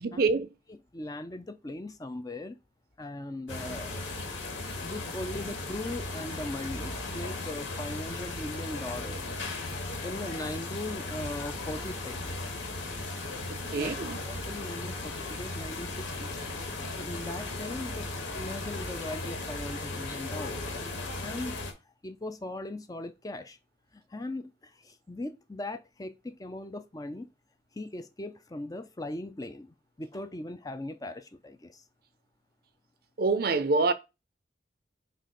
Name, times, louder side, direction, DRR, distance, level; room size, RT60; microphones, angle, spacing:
voice 1, 0.0-0.5 13.7-14.2 33.2-33.9, right 3 dB, 50° right, 0.6 m, -26 dB
voice 2, 0.7-2.6 3.0-4.0 4.8-9.2 10.0-12.5 13.7-13.9 14.2-16.4 17.0-18.1 18.3-20.6 21.2-21.6 22.0-23.6 23.9-27.3 27.7-31.8, left 1 dB, 20° left, 0.5 m, -39 dB
sound 1, 3.5-21.7, left 2 dB, 90° left, 1.8 m, -36 dB
7.5 x 2.5 x 5.2 m
head